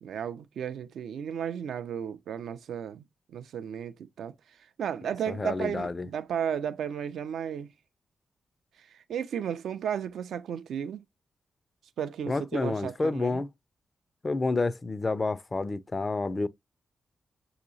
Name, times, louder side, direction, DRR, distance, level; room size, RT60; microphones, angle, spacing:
voice 1, 0.0-4.3 4.8-7.7 8.9-11.0 12.0-13.4, right 8 dB, 85° right, 0.4 m, -34 dB
voice 2, 5.3-6.1 12.3-13.5 14.2-16.5, left 3 dB, 35° left, 0.3 m, -29 dB
6.1 x 2.8 x 2.5 m
cardioid pair, 65°, 0 cm